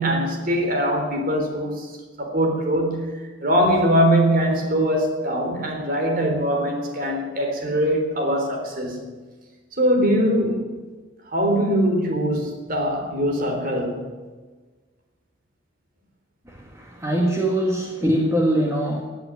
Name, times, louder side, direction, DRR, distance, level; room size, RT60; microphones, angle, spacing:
voice 1, 0.0-1.9 2.2-3.1 3.4-9.1 9.7-10.6 11.3-14.1, equal, 50° right, 2 dB, 3.9 m, -22 dB
voice 2, 16.5-19.0, right 1 dB, 15° right, -1 dB, 1.9 m, -22 dB
17.0 x 8.2 x 9.5 m, 1.4 s
head